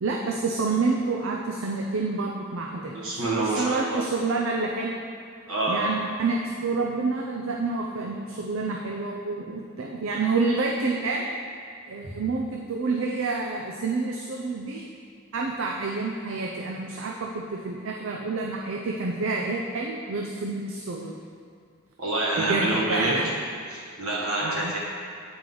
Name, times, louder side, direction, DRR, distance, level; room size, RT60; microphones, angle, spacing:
voice 1, 0.0-5.0 5.7-11.3 11.9-14.9 15.3-21.2 22.4-23.3 24.4-24.7, right 3 dB, 70° right, 0 dB, 0.5 m, -28 dB
voice 2, 2.9-4.0 5.5-5.9 12.0-12.1 22.0-23.1 23.7-24.8, right 2 dB, 90° right, -6 dB, 1.7 m, -27 dB
8.3 x 4.8 x 3.9 m, 2.3 s
head